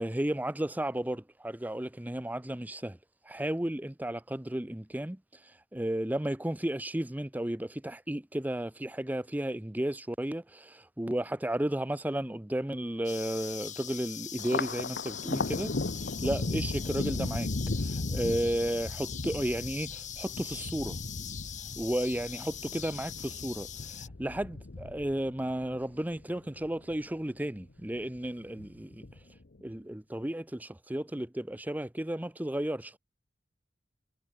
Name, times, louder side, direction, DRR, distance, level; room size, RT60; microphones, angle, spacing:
voice 1, 0.0-3.0 3.3-5.2 5.7-15.8 16.2-17.5 17.8-21.0 21.8-23.7 24.0-29.1 29.6-33.0, right 1 dB, 10° right, 0.7 m, -33 dB
sound 1, 13.0-24.1, left 10 dB, 45° left, 2.1 m, -42 dB
Thunder, 14.4-27.0 27.4-28.2 28.6-29.4, left 2 dB, 60° left, 1.0 m, -36 dB
sound 2, 17.7-22.9, equal, 15° left, 3.0 m, -58 dB
head